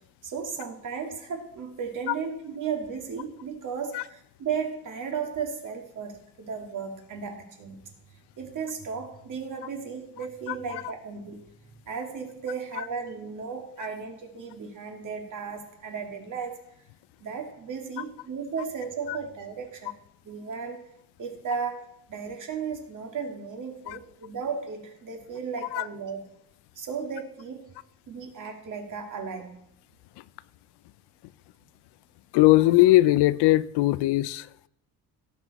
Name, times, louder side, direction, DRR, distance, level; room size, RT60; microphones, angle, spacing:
voice 1, 0.2-7.8 8.4-11.4 11.9-16.6 17.2-19.9 20.2-20.9 21.2-26.2 26.8-27.7 28.1-29.6, right 6 dB, 50° right, 2.3 m, -35 dB
voice 2, 10.5-10.8 19.1-19.2 23.9-24.0 25.7-25.9 30.2-30.3 32.3-34.7, left 17 dB, 90° left, 0.6 m, -21 dB
17.0 x 7.0 x 4.1 m
cardioid pair, 135°, 39 cm